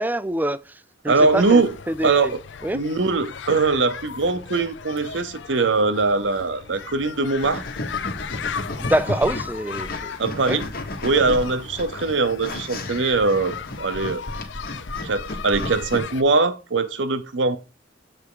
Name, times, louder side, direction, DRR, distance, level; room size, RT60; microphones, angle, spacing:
voice 1, 0.0-2.3 2.6-2.8 8.8-10.2 10.4-10.6, right 1 dB, 10° right, 0.3 m, -25 dB
sound 1, 1.1-16.2, left 7 dB, 75° left, 0.5 m, -36 dB
voice 2, 1.1-1.7 2.0-2.3 2.7-7.6 10.2-10.7 11.0-14.2 15.0-17.6, right 3 dB, 85° right, 0.8 m, -21 dB
sound 2, 7.4-16.0, left 1 dB, 55° left, 1.4 m, -33 dB
7.5 x 3.5 x 4.8 m
head